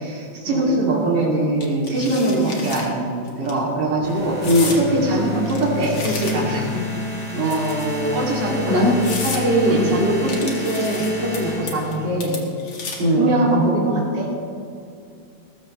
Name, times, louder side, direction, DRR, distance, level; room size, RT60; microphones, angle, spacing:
voice 1, 0.0-4.4 4.6-6.7 8.1-12.4 13.1-14.3, right 2 dB, 55° right, -4 dB, 3.5 m, -22 dB
sound 1, 1.6-2.9 3.3-3.5 4.4-4.8 5.5-6.6 7.5-8.1 8.6-8.7 9.0-9.4 10.3-11.4 11.7-12.0 12.2-13.1, left 4 dB, 75° left, 2.8 m, -32 dB
sound 2, 4.0-12.4, left 4 dB, 5° left, 3.4 m, -30 dB
voice 2, 4.4-4.8 6.7-6.8 7.3-8.2 8.7-8.9 9.7-9.9 13.0-13.3, left 1 dB, 75° right, -5 dB, 3.3 m, -20 dB
19.0 x 14.5 x 3.3 m, 2.5 s
omnidirectional pair, 2.2 m